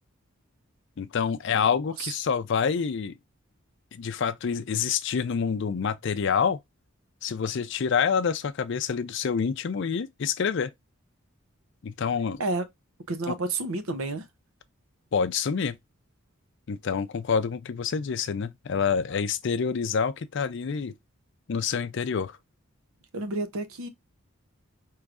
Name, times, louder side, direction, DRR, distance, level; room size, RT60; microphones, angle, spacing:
voice 1, 1.0-3.1 3.9-6.6 7.2-10.7 11.8-12.4 13.3-13.4 15.1-15.8 16.7-20.9 21.5-22.4, left 6 dB, 55° left, 0.4 m, -27 dB
voice 2, 13.1-14.2 23.1-23.9, right 2 dB, 80° right, 0.8 m, -30 dB
4.7 x 3.1 x 2.4 m
head